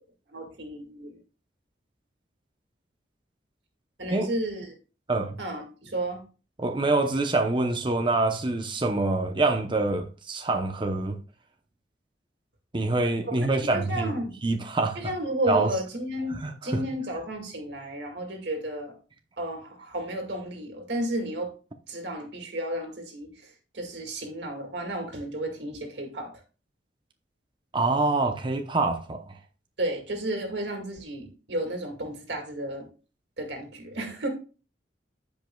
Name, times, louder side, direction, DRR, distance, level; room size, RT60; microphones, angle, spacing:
voice 1, 0.3-1.2 4.0-4.7 5.4-6.2 13.4-14.3 15.0-18.9 19.4-21.5 21.9-26.3 29.8-32.9 33.4-34.3, right 1 dB, 70° right, 2.1 m, -33 dB
voice 2, 5.1-5.4 6.6-11.2 12.7-14.1 14.4-15.0 15.5-15.7 16.4-16.8 27.7-29.2, right 2 dB, 25° right, 0.8 m, -25 dB
15.0 x 5.3 x 2.3 m
head